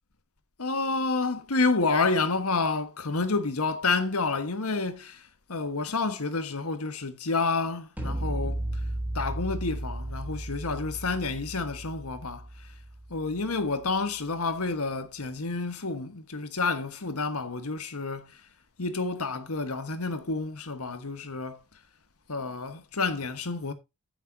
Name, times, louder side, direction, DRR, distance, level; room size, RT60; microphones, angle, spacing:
voice 1, 0.6-5.2 5.5-8.6 9.1-12.4 13.1-18.4 18.8-21.6 22.3-23.7, left 3 dB, 75° left, 1.4 m, -29 dB
sound 1, 8.0-13.9, right 1 dB, 10° right, 3.2 m, -35 dB
10.0 x 8.6 x 2.7 m
head